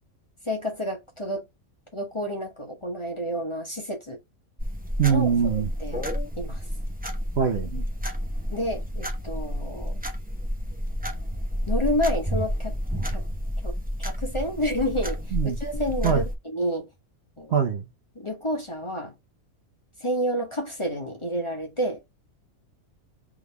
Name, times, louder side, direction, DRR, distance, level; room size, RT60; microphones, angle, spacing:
voice 1, 0.4-1.5 1.9-4.2 5.1-6.1 6.4-6.6 8.5-10.0 11.7-12.7 13.0-13.2 13.6-16.9 17.4-17.6 18.1-19.1 20.0-22.0, equal, 25° left, 1.0 m, -30 dB
sound 1, 4.6-16.3, equal, 10° right, 0.6 m, -30 dB
voice 2, 5.0-5.7 7.4-7.8 15.3-15.6 16.0-16.2 17.5-17.9, right 7 dB, 55° right, 0.9 m, -23 dB
3.9 x 3.5 x 3.3 m
omnidirectional pair, 1.5 m